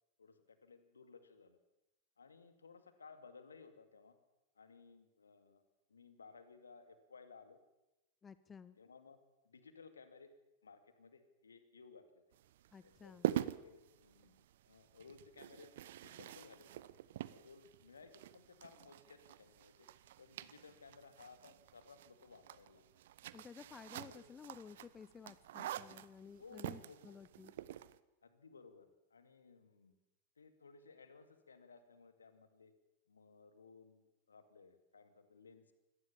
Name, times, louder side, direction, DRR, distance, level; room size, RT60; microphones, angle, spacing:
voice 1, 0.2-1.6 2.2-4.2 4.6-5.6 5.9-7.6 8.8-9.2 9.4-10.3 10.6-12.2 12.8-15.7 16.0-16.9 17.3-19.9 20.2-23.0 24.1-24.3 26.4-27.2 28.2-29.9 30.4-32.7 33.1-35.7, left 4 dB, 75° left, 9 dB, 2.4 m, -59 dB
voice 2, 8.2-8.8 12.7-13.3 23.3-27.5, left 6 dB, 20° left, 16 dB, 0.8 m, -54 dB
sound 1, 12.3-28.0, right 12 dB, 55° right, 0.8 m, -46 dB
24.0 x 18.0 x 7.2 m, 0.95 s
figure-of-eight pair, 90°, 0 cm